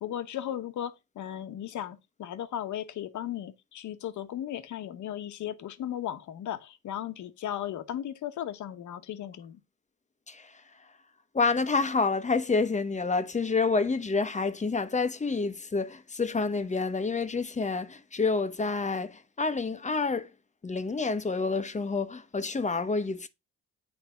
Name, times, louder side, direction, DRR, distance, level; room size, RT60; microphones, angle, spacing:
voice 1, 0.0-9.6, left 11 dB, 75° left, 1.2 m, -36 dB
voice 2, 11.3-20.3 20.6-23.3, left 4 dB, 25° left, 1.0 m, -28 dB
9.6 x 3.7 x 5.0 m
cardioid pair, 90°, 30 cm